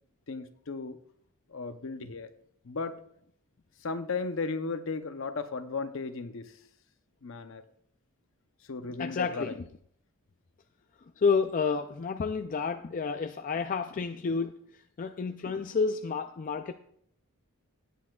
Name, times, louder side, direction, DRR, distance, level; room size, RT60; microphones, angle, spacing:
voice 1, 0.3-1.0 1.5-2.3 2.6-3.0 3.8-6.5 7.2-7.6 8.7-9.6, left 4 dB, 60° left, 10 dB, 0.7 m, -35 dB
voice 2, 9.0-9.6 11.2-16.7, left 5 dB, 35° left, 7 dB, 0.3 m, -30 dB
18.0 x 8.4 x 2.3 m, 0.66 s
head